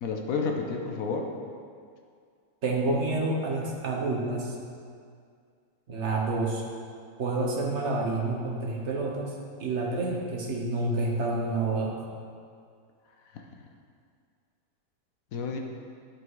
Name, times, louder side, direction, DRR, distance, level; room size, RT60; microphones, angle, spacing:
voice 1, 0.0-1.3 15.3-15.6, left 4 dB, 60° left, 2 dB, 0.9 m, -30 dB
voice 2, 2.6-4.6 5.9-6.6 7.2-9.3 9.6-12.0, right 2 dB, 45° right, -1 dB, 1.1 m, -28 dB
11.0 x 4.9 x 4.7 m, 2.2 s
omnidirectional pair, 2.2 m